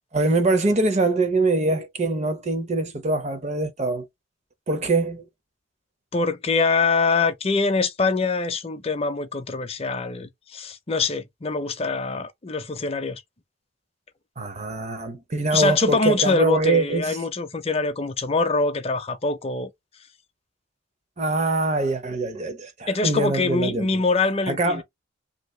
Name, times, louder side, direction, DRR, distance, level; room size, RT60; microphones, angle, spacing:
voice 1, 0.1-4.1 4.7-5.2 14.4-17.2 21.2-24.0 24.5-24.8, right 2 dB, 35° right, 0.7 m, -23 dB
voice 2, 6.1-13.2 15.5-19.7 22.9-24.8, left 3 dB, 30° left, 0.5 m, -24 dB
3.0 x 2.8 x 3.1 m
head